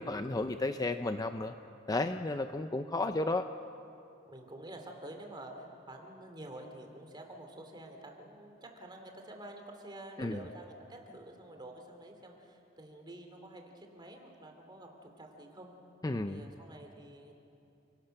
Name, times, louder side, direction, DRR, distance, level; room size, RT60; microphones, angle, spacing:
voice 1, 0.0-1.5 1.9-3.5 10.2-10.4 16.0-16.4, left 2 dB, 20° left, 8 dB, 0.5 m, -33 dB
voice 2, 4.3-15.7 16.2-17.3, right 1 dB, 25° right, 3 dB, 2.7 m, -49 dB
30.0 x 17.5 x 6.6 m, 2.7 s
head